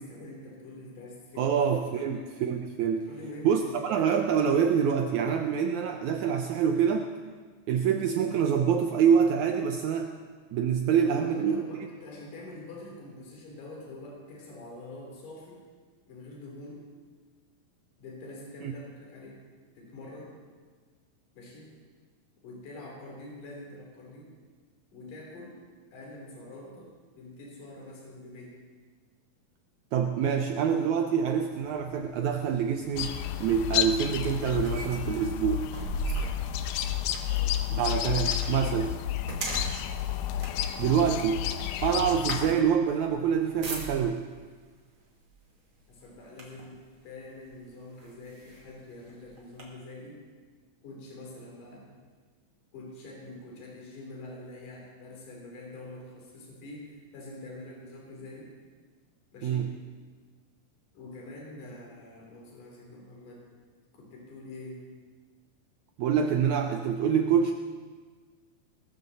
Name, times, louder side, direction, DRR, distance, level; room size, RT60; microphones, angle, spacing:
voice 1, 0.0-1.6 1.9-2.3 3.1-3.9 10.9-15.6 16.1-16.9 18.0-19.4 19.7-20.4 21.3-21.7 22.4-24.3 24.9-25.6 25.9-28.6 37.3-37.6 45.9-46.8 47.0-50.2 50.8-51.9 52.7-58.5 59.3-59.7 60.9-63.4 63.9-64.8, left 2 dB, 65° left, -2 dB, 4.7 m, -45 dB
voice 2, 1.4-3.1 3.4-7.1 7.7-10.1 10.5-11.6 18.6-18.7 29.9-33.1 33.4-35.6 37.7-38.9 40.8-41.5 41.8-44.2 59.4-59.7 66.0-67.5, right 7 dB, 80° right, 5 dB, 1.7 m, -26 dB
sound 1, 31.5-44.3 45.2-45.4 45.8-46.8 47.4-47.5 48.0-49.6, right 3 dB, 40° right, 2.9 m, -40 dB
sound 2, 33.0-42.6, left 11 dB, 90° left, 2.4 m, -31 dB
20.0 x 14.0 x 4.1 m, 1.5 s
omnidirectional pair, 4.2 m